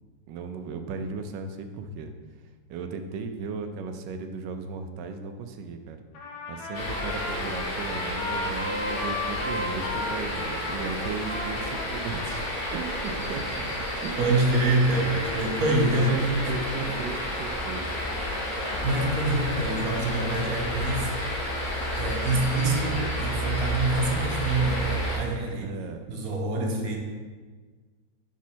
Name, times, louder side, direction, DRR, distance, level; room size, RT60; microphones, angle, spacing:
voice 1, 0.3-2.1 2.7-6.0 6.5-12.4 12.7-14.3 15.8-18.0 25.4-26.1, right 5 dB, 85° right, 7 dB, 1.2 m, -36 dB
Trumpet, 6.1-13.2, left 2 dB, 75° left, 1.5 m, -35 dB
sound 1, 6.7-25.2, equal, 30° left, 1.5 m, -31 dB
voice 2, 14.2-16.6 18.8-21.1 21.9-25.8 26.1-27.0, right 2 dB, 60° right, 1 dB, 1.2 m, -26 dB
6.2 x 3.6 x 4.2 m, 1.4 s
omnidirectional pair, 1.9 m